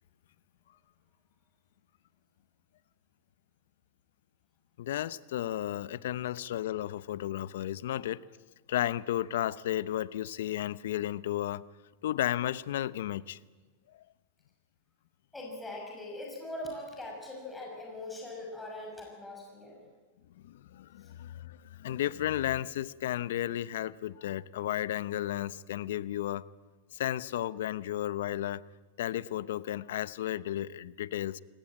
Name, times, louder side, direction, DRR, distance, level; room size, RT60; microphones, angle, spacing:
voice 1, 4.8-8.2 8.7-11.6 12.0-13.4 20.3-26.4 26.9-28.6 29.0-31.4, left 12 dB, 80° left, 0.7 m, -33 dB
voice 2, 15.3-19.8 21.0-21.1, left 1 dB, 10° left, 5.9 m, -41 dB
23.5 x 19.5 x 8.7 m
supercardioid pair, 135°, 0 cm